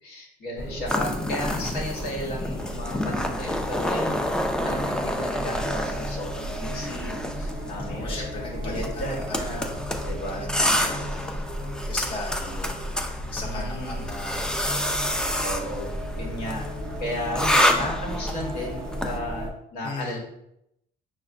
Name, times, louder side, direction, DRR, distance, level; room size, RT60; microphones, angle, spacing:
voice 1, 0.0-4.2 4.6-9.7 10.0-10.4 13.4-14.0 15.4-16.7 17.0-20.2, left 1 dB, 70° left, -2 dB, 1.1 m, -34 dB
sound 1, 0.6-19.5, equal, 25° right, 0.9 m, -34 dB
sound 2, 0.9-19.2, left 1 dB, 5° left, 0.3 m, -29 dB
voice 2, 7.9-11.5 11.9-12.8 13.3-14.5 19.8-20.2, left 2 dB, 30° left, -2 dB, 0.8 m, -37 dB
5.4 x 2.1 x 2.5 m, 0.79 s
cardioid pair, 110°, 17 cm